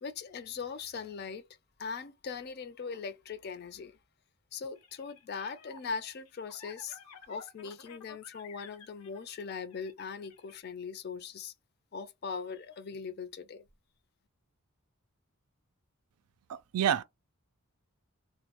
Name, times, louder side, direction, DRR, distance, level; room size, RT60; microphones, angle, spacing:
voice 1, 0.0-1.5 1.8-4.0 4.5-11.5 11.9-13.6, left 5 dB, 45° left, 0.4 m, -40 dB
sound 1, 4.8-10.5, left 5 dB, 90° left, 0.6 m, -53 dB
voice 2, 16.5-17.0, right 9 dB, 85° right, 0.4 m, -28 dB
2.2 x 2.0 x 2.8 m
head